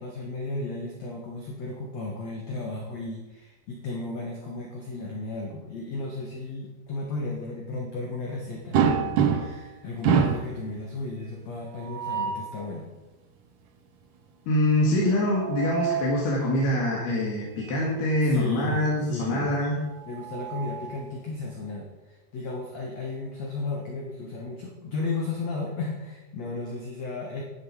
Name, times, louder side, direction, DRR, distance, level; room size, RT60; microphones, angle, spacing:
voice 1, 0.0-12.9 18.2-19.5 20.1-27.4, left 3 dB, 55° left, 0 dB, 2.3 m, -34 dB
sound 1, 8.7-9.7 10.0-10.5 11.7-12.5 15.2-16.2 17.6-17.8 18.2-18.3 19.8-21.0, right 7 dB, 65° right, 2.2 m, -26 dB
voice 2, 14.5-19.8, left 1 dB, 80° left, -3 dB, 3.8 m, -24 dB
12.0 x 11.0 x 4.9 m, 1.1 s
omnidirectional pair, 4.5 m